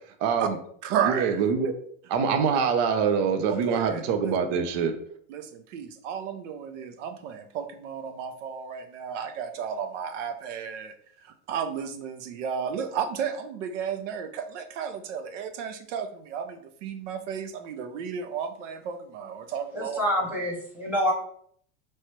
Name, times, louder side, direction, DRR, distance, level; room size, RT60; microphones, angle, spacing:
voice 1, 0.2-0.6 1.0-1.7 2.1-5.0, right 6 dB, 45° right, 7 dB, 0.5 m, -24 dB
voice 2, 0.8-1.4 3.5-4.4 5.3-10.9 11.2-20.0, right 7 dB, 85° right, 8 dB, 0.7 m, -33 dB
voice 3, 19.7-21.1, equal, 5° right, -3 dB, 0.6 m, -26 dB
3.1 x 2.9 x 4.5 m, 0.64 s
supercardioid pair, 175°, 36 cm